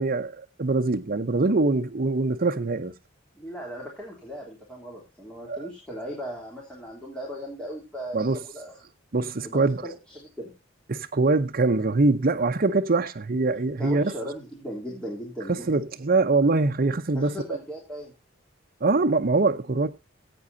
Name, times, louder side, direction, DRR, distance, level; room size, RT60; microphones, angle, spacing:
voice 1, 0.0-2.9 5.5-5.7 8.1-8.4 9.1-9.8 10.9-14.1 15.7-17.3 18.8-19.9, right 3 dB, 50° right, 0.8 m, -23 dB
voice 2, 3.3-8.2 8.4-8.8 9.4-10.5 13.8-15.8 17.1-18.1, equal, 5° left, 3.1 m, -37 dB
19.0 x 8.5 x 2.7 m
head